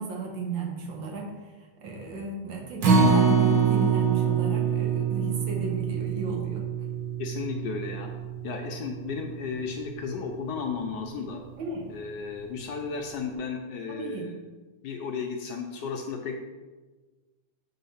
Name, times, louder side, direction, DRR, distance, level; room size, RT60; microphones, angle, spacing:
voice 1, 0.0-6.7 11.6-11.9 13.9-14.3, right 3 dB, 70° right, 1 dB, 1.8 m, -34 dB
Acoustic guitar, 2.8-9.1 9.5-9.6 10.0-10.1, right 6 dB, 50° right, 1.6 m, -25 dB
voice 2, 7.2-8.1 8.4-11.4 11.9-14.3 14.8-16.4, left 5 dB, 70° left, 3 dB, 1.1 m, -34 dB
7.1 x 3.8 x 5.6 m, 1.3 s
omnidirectional pair, 2.3 m